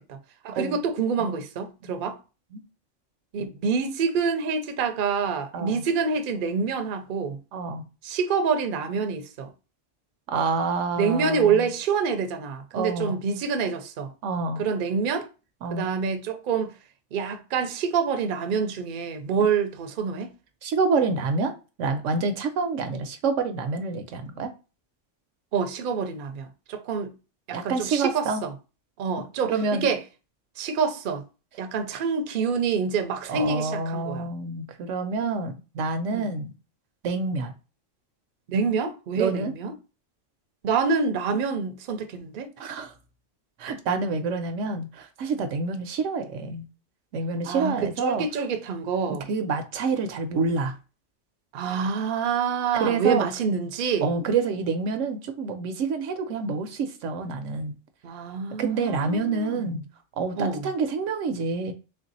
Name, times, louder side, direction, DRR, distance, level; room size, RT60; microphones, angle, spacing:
voice 1, 0.4-2.2 3.3-7.4 8.0-9.5 11.0-14.1 14.6-15.3 15.7-16.7 17.1-20.3 25.5-27.1 27.5-28.5 29.0-30.0 30.6-31.2 31.6-34.3 36.1-36.3 38.5-39.7 40.6-42.5 47.4-49.2 51.5-54.1 58.0-59.6 60.4-60.6, right 5 dB, 55° right, 0.7 m, -27 dB
voice 2, 5.5-5.8 7.5-7.8 10.3-11.7 12.7-13.2 14.2-14.7 15.6-15.9 20.6-21.5 21.8-24.5 27.5-28.4 29.5-29.9 33.3-36.5 37.0-37.5 39.2-39.5 42.6-42.9 43.6-46.6 47.1-48.3 49.1-50.7 52.7-53.3 54.0-57.7 58.6-59.8 60.2-61.7, right 4 dB, 80° right, 1.0 m, -27 dB
3.4 x 2.6 x 3.9 m
omnidirectional pair, 1.3 m